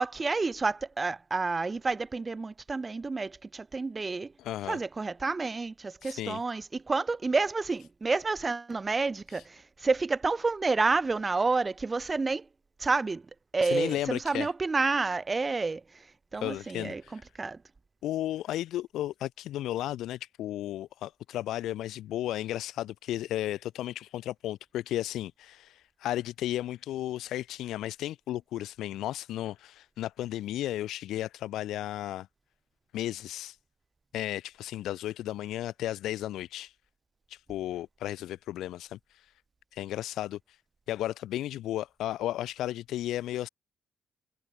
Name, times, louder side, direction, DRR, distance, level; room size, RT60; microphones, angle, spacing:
voice 1, 0.0-4.3 4.7-6.6 6.9-9.4 9.8-12.4 12.8-13.2 13.5-15.8 16.3-17.0 17.4-17.6, right 3 dB, 25° right, 0.6 m, -29 dB
voice 2, 4.4-4.8 6.0-6.4 9.3-9.5 13.6-14.5 16.3-17.3 18.0-32.3 32.9-33.6 34.1-36.7 37.3-39.3 39.7-40.6 40.9-43.5, left 13 dB, 85° left, 3.6 m, -34 dB
cardioid pair, 90°, 0 cm